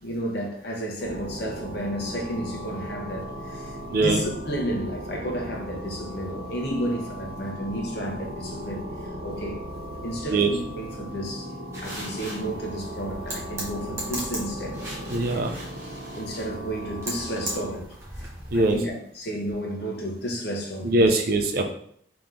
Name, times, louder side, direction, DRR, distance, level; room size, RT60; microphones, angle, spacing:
voice 1, 0.0-8.8 9.2-9.6 10.0-11.5 11.8-14.8 15.3-15.4 16.2-17.9 18.5-21.2, equal, 55° left, 0 dB, 0.9 m, -32 dB
sound 1, 1.0-17.7, equal, 85° right, 1.0 m, -37 dB
sound 2, 11.7-18.9, right 1 dB, 15° right, 1.0 m, -38 dB
voice 2, 15.1-15.6 18.5-18.8 20.8-21.6, right 2 dB, 50° right, 5 dB, 0.5 m, -21 dB
3.5 x 2.9 x 3.7 m, 0.63 s
head